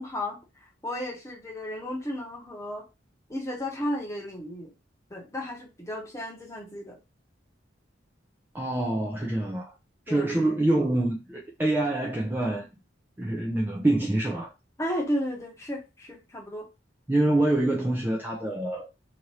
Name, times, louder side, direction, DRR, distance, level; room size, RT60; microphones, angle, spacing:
voice 1, 0.0-2.8 3.3-4.7 5.1-7.0 10.1-10.3 14.8-16.7, equal, 15° left, 0.8 m, -33 dB
voice 2, 8.5-9.7 10.1-12.7 13.2-14.5 17.1-18.9, right 1 dB, 10° right, 0.4 m, -26 dB
2.8 x 2.5 x 3.0 m
head